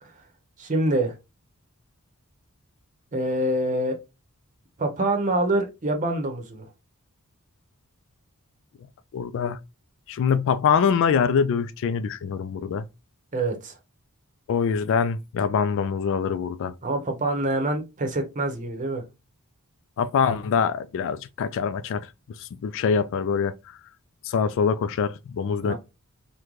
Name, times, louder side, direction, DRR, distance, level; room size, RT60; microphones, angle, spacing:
voice 1, 0.6-1.1 3.1-4.0 4.8-6.7 13.3-13.8 16.8-19.0 25.6-25.7, right 1 dB, 35° right, 0.8 m, -25 dB
voice 2, 9.1-9.6 10.1-12.9 14.5-16.7 20.0-23.8 24.2-25.7, left 6 dB, 60° left, 0.3 m, -24 dB
3.7 x 2.2 x 3.0 m
head